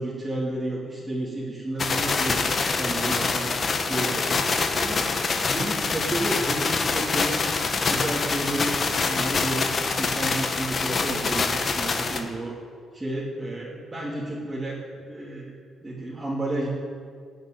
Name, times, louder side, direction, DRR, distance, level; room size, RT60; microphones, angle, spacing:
voice 1, 0.0-3.5 3.8-4.5 4.8-7.4 7.8-12.6 12.9-16.7, right 1 dB, 15° right, -7 dB, 3.0 m, -31 dB
sound 1, 1.8-12.2, left 4 dB, 40° left, 1.5 m, -25 dB
18.0 x 6.7 x 9.4 m, 2.1 s
cardioid pair, 90°, 0 cm